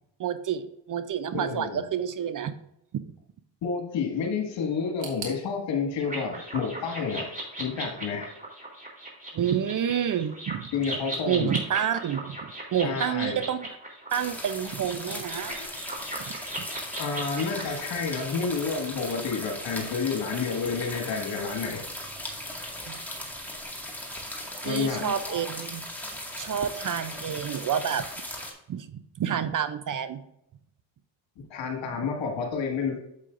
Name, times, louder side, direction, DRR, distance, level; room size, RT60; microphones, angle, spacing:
voice 1, 0.2-2.5 2.9-3.0 9.3-10.7 11.3-12.4 12.7-13.6 14.1-15.5 16.6-16.7 22.9-23.0 24.6-25.8 26.4-28.1 28.7-30.2, right 9 dB, 40° right, 12 dB, 0.7 m, -29 dB
voice 2, 1.3-1.8 3.6-7.3 7.6-8.3 10.7-11.6 12.8-13.4 15.1-15.7 17.0-21.8 24.6-25.4 31.5-33.0, left 5 dB, 60° left, 3 dB, 2.0 m, -30 dB
sound 1, 5.0-7.9 8.1-8.9 9.2-9.3 10.2-10.3, right 5 dB, 65° right, 2.4 m, -46 dB
sound 2, 6.0-17.8, right 1 dB, 15° right, 3.2 m, -38 dB
sound 3, 14.1-28.5, left 1 dB, 5° left, 2.0 m, -38 dB
8.2 x 7.6 x 2.6 m, 0.80 s
supercardioid pair, 70°, 49 cm